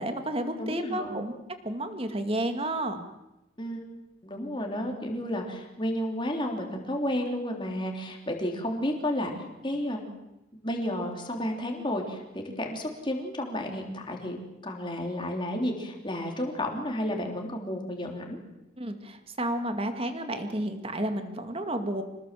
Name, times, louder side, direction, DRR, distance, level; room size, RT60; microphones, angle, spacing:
voice 1, 0.0-1.4 1.6-3.1 18.8-22.0, right 1 dB, 30° right, 7 dB, 2.2 m, -31 dB
voice 2, 0.6-1.2 3.6-3.8 4.2-10.1 10.6-18.4, left 1 dB, 25° left, 2 dB, 3.5 m, -32 dB
26.5 x 19.5 x 7.6 m, 0.95 s
head